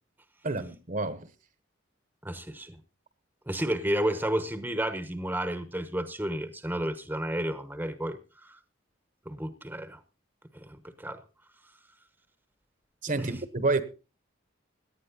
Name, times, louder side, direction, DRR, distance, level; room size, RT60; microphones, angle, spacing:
voice 1, 0.4-1.3 13.0-13.8, right 3 dB, 45° right, 1.1 m, -29 dB
voice 2, 2.2-2.8 3.5-8.6 9.3-10.0 10.5-11.2 13.2-13.3, right 1 dB, 10° right, 1.0 m, -32 dB
17.5 x 10.5 x 3.9 m
head